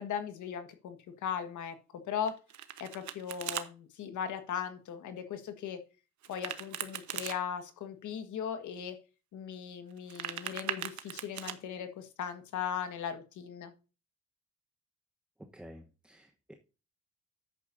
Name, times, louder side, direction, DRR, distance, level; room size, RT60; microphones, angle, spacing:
voice 1, 0.0-1.7 2.0-2.3 2.8-5.8 6.3-9.0 9.3-13.7, left 8 dB, 75° left, 8 dB, 1.7 m, -38 dB
Domestic sounds home sounds, 2.3-3.7 6.2-7.4 9.9-11.6, right 11 dB, 70° right, 1.1 m, -39 dB
voice 2, 15.4-16.5, equal, 5° right, 5 dB, 1.1 m, -51 dB
10.5 x 8.4 x 2.7 m, 0.32 s
cardioid pair, 90°, 30 cm